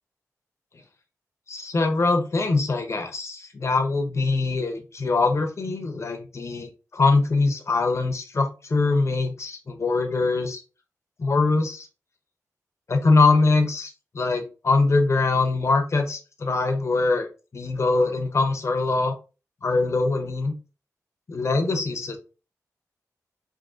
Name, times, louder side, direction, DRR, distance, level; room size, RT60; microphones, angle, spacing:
voice 1, 1.5-10.6 11.2-11.9 12.9-17.3 17.5-19.2 19.6-20.5 21.3-22.2, left 3 dB, 50° left, 4 dB, 0.8 m, -23 dB
3.6 x 2.3 x 2.5 m, 0.33 s
cardioid pair, 70°, 6 cm